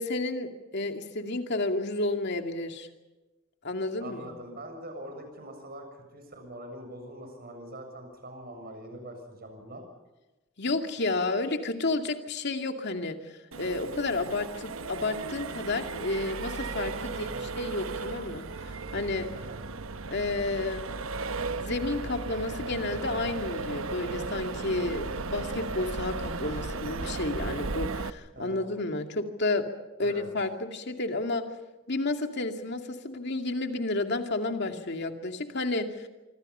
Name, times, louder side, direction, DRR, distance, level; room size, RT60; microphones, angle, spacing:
voice 1, 0.0-2.9 3.6-4.3 10.6-13.2 13.6-17.3 17.6-18.5 18.9-19.3 20.1-20.9 21.6-29.7 30.0-31.4 31.9-36.1, left 2 dB, 55° left, 5 dB, 2.4 m, -31 dB
voice 2, 4.0-9.8 17.1-17.5 19.3-19.7 28.3-28.7 30.0-30.3, right 1 dB, 50° right, 5 dB, 7.2 m, -43 dB
Accelerating revving vroom, 13.5-28.1, right 3 dB, 80° right, 1.0 m, -35 dB
25.5 x 25.5 x 5.6 m, 1.1 s
head